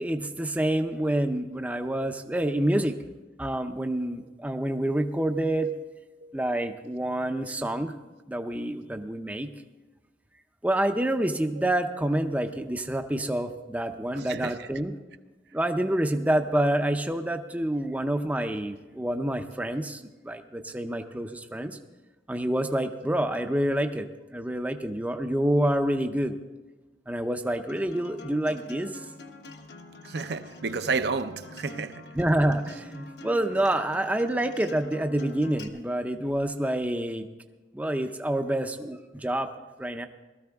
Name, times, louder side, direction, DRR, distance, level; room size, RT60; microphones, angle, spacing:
voice 1, 0.0-3.0 3.4-5.7 6.3-7.9 8.3-9.5 10.6-14.9 15.5-21.8 22.3-24.1 24.3-26.4 27.1-28.9 32.2-37.3 37.7-39.5 39.8-40.1, right 1 dB, 10° right, 0.5 m, -27 dB
voice 2, 14.1-14.7 30.0-32.0, right 4 dB, 65° right, 0.6 m, -31 dB
Acoustic guitar, 27.7-35.7, left 2 dB, 60° left, 1.0 m, -46 dB
17.5 x 13.5 x 3.5 m
head